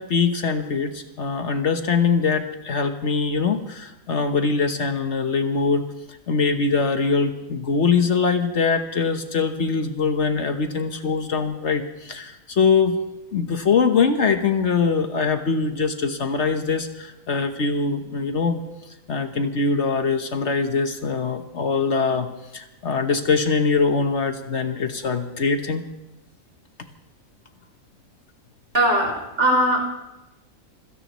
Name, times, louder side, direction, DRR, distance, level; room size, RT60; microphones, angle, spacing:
voice 1, 0.0-5.9 6.3-13.0 13.3-18.6 19.1-22.3 22.5-25.8, left 5 dB, 60° left, 7 dB, 1.3 m, -22 dB
voice 2, 28.7-29.8, right 1 dB, 55° right, -1 dB, 4.7 m, -19 dB
26.0 x 17.0 x 3.1 m, 0.95 s
omnidirectional pair, 1.4 m